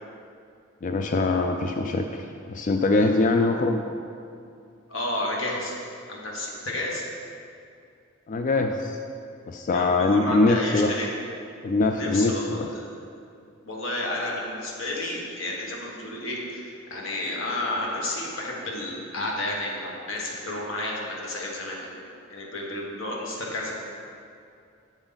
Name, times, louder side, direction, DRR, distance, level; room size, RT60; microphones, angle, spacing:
voice 1, 0.8-3.8 8.3-9.0 9.5-10.9 11.6-12.7, left 3 dB, 40° left, 5 dB, 0.3 m, -23 dB
voice 2, 4.9-5.8 6.1-7.0 9.7-11.1 11.9-12.8 13.6-22.0 22.3-23.8, left 1 dB, 65° left, -2 dB, 1.5 m, -31 dB
7.8 x 7.1 x 4.0 m, 2.5 s
head